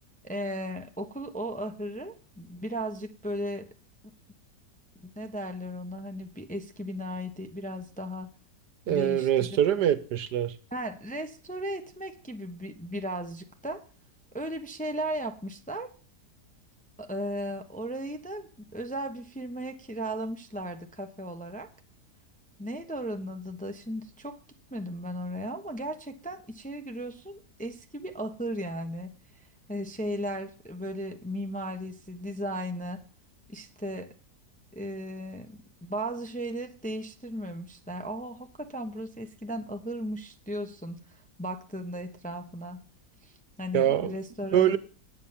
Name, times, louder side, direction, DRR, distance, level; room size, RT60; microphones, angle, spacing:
voice 1, 0.2-3.7 5.0-8.3 8.9-9.6 10.7-13.8 14.3-15.9 17.0-21.7 22.6-24.4 24.7-29.1 29.7-33.0 33.5-34.1 34.7-41.0 41.4-42.8 43.2-43.3 43.6-44.8, equal, 5° left, 0.7 m, -36 dB
voice 2, 8.9-10.5 43.7-44.2 44.5-44.8, right 10 dB, 75° right, 1.5 m, -24 dB
9.2 x 9.1 x 7.1 m
omnidirectional pair, 1.8 m